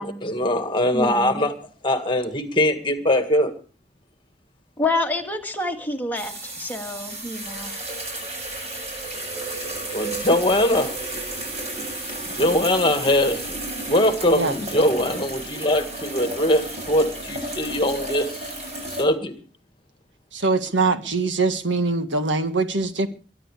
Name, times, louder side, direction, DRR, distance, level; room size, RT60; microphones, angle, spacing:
voice 1, 0.2-1.5 1.8-3.5 9.9-11.0 12.3-13.6 13.9-18.3 18.9-19.3, left 1 dB, 25° left, 1.9 m, -21 dB
voice 2, 0.9-1.4 4.8-7.8, left 2 dB, 10° left, 1.8 m, -28 dB
sound 1, 6.1-19.0, right 2 dB, 35° right, 7.4 m, -32 dB
voice 3, 20.3-23.1, right 3 dB, 90° right, 1.8 m, -23 dB
22.5 x 11.0 x 4.9 m
head